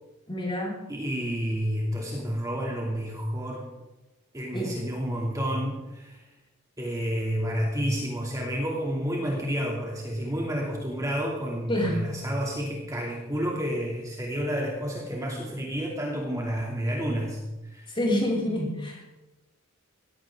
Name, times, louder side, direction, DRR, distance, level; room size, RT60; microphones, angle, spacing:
voice 1, 0.3-0.8 4.5-4.7 11.7-12.0 17.9-19.1, left 1 dB, 25° left, -3 dB, 5.6 m, -27 dB
voice 2, 0.9-3.7 4.3-6.2 6.8-18.0, equal, 15° right, -2 dB, 2.7 m, -30 dB
19.0 x 16.0 x 3.8 m, 1.1 s
head